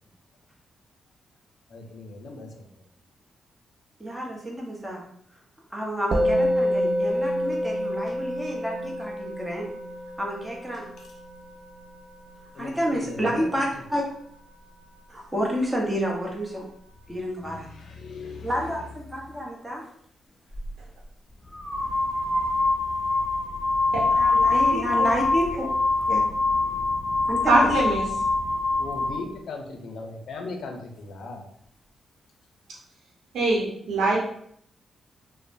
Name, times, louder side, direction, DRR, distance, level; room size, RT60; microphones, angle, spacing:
voice 1, 1.7-2.7 6.1-6.3 12.5-13.6 17.4-18.8 19.3-19.4 28.8-31.5, left 3 dB, 70° left, 4 dB, 0.5 m, -38 dB
voice 2, 4.0-5.0 5.7-9.7 10.2-10.8 12.6-14.0 15.1-16.7 17.1-17.7 18.4-19.8 24.5-25.7 26.1-26.2 27.3-27.7, equal, 10° right, -2 dB, 0.9 m, -29 dB
Musical instrument, 6.1-15.6, equal, 55° right, 0.4 m, -29 dB
sound 1, 20.5-20.7 21.5-29.2, left 3 dB, 20° left, 0.5 m, -24 dB
voice 3, 23.9-25.1 27.5-28.0 33.3-34.2, right 2 dB, 85° right, -3 dB, 0.8 m, -24 dB
2.8 x 2.0 x 2.6 m, 0.66 s
cardioid pair, 65°, 0 cm